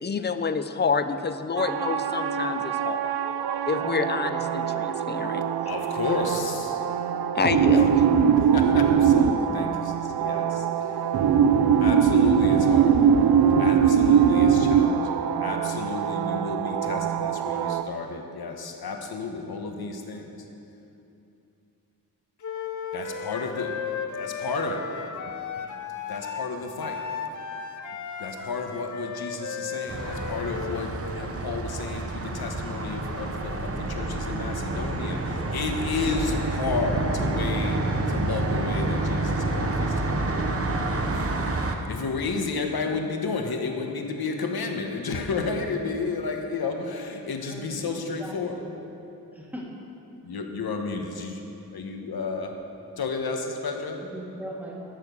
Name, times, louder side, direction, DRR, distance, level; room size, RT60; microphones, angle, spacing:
voice 1, 0.0-3.1 3.7-5.5 7.3-8.0, left 5 dB, 30° left, 10 dB, 0.4 m, -28 dB
sound 1, 1.6-17.8, right 7 dB, 85° right, 0.5 m, -22 dB
voice 2, 5.7-6.8 7.7-7.8 8.4-11.1 11.8-13.0 13.6-20.3 22.9-23.7 24.1-24.9 26.1-27.1 28.2-40.3 41.1-41.3 41.9-48.6 50.2-52.6 53.0-54.0, left 4 dB, 85° left, 4 dB, 1.2 m, -32 dB
Wind instrument woodwind instrument, 22.4-31.0, left 6 dB, 55° left, 0.7 m, -35 dB
sound 2, 29.9-41.7, right 2 dB, 40° right, 0.8 m, -28 dB
voice 3, 47.5-48.8 49.3-49.7 54.1-54.8, right 1 dB, 5° right, -3 dB, 1.6 m, -40 dB
13.0 x 6.7 x 6.9 m, 2.8 s
wide cardioid pair, 170°, 36 cm